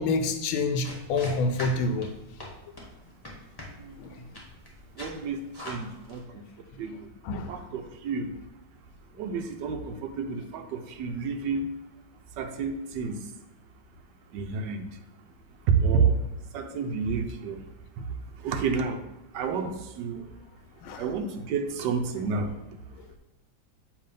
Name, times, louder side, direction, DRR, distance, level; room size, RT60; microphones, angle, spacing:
voice 1, 0.0-2.1 4.0-4.1 7.2-7.6 20.8-21.0, left 3 dB, 90° left, 7 dB, 1.4 m, -27 dB
sound 1, 0.8-6.2, left 1 dB, 15° left, 0.8 m, -43 dB
voice 2, 5.0-5.4 5.6-6.2 6.8-7.1 7.5-8.3 9.2-11.7 12.4-13.2 14.3-14.9 15.7-16.2 16.5-17.6 18.4-19.0 19.3-20.2 21.0-22.5, right 5 dB, 70° right, 6 dB, 1.1 m, -29 dB
7.4 x 2.7 x 5.1 m, 0.96 s
omnidirectional pair, 2.2 m